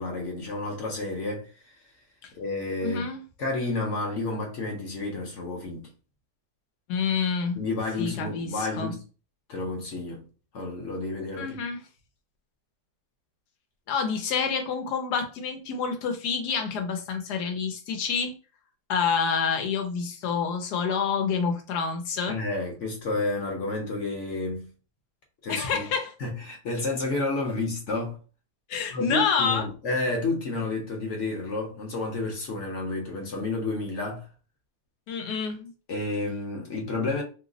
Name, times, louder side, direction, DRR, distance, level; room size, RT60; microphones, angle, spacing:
voice 1, 0.0-1.5 2.3-3.1 3.4-5.9 7.6-9.0 9.5-10.2 10.5-11.6 22.3-24.7 25.4-25.9 26.2-28.2 28.9-34.3 35.9-37.2, left 2 dB, 55° left, 1.0 m, -30 dB
voice 2, 2.8-3.2 6.9-7.6 8.0-8.9 11.4-11.8 13.9-18.3 18.9-22.4 25.5-26.1 28.7-29.7 35.1-35.7, left 6 dB, 90° left, 1.3 m, -28 dB
3.1 x 2.0 x 3.7 m
omnidirectional pair, 1.7 m